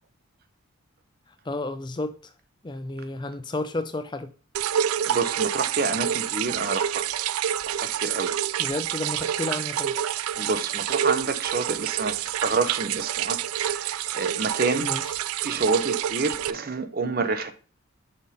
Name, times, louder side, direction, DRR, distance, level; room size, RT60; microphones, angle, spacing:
voice 1, 1.5-2.3 2.6-4.3 8.6-9.9 14.8-15.2, left 2 dB, 20° left, 0.4 m, -32 dB
sound 1, 4.5-16.5, right 10 dB, 85° right, 0.3 m, -28 dB
voice 2, 5.1-7.1 7.7-8.3 10.4-13.4 13.7-14.9 15.4-17.5, right 4 dB, 45° right, 0.7 m, -28 dB
6.4 x 3.6 x 5.4 m
head